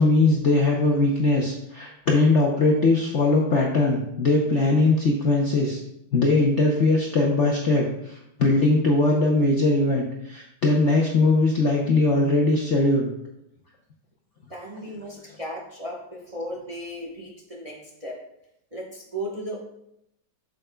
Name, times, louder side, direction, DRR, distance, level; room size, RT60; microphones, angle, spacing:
voice 1, 0.0-5.8 6.1-13.1, left 2 dB, 60° left, -1 dB, 0.8 m, -20 dB
voice 2, 14.5-18.2 18.7-19.6, equal, 25° right, -2 dB, 0.8 m, -35 dB
8.5 x 6.7 x 2.2 m, 0.80 s
omnidirectional pair, 2.1 m